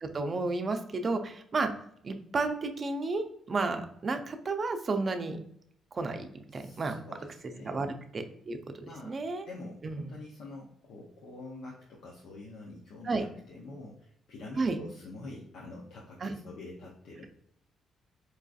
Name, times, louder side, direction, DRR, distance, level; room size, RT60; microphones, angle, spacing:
voice 1, 0.0-1.7 2.0-5.4 5.9-6.9 7.6-9.4 9.8-10.0 13.0-13.3 14.6-14.8 16.2-16.4, right 3 dB, 40° right, 6 dB, 0.5 m, -32 dB
voice 2, 6.5-7.9 8.8-9.2 9.4-17.3, left 2 dB, 80° left, -3 dB, 0.7 m, -46 dB
4.6 x 2.5 x 2.3 m, 0.70 s
cardioid pair, 90°, 0 cm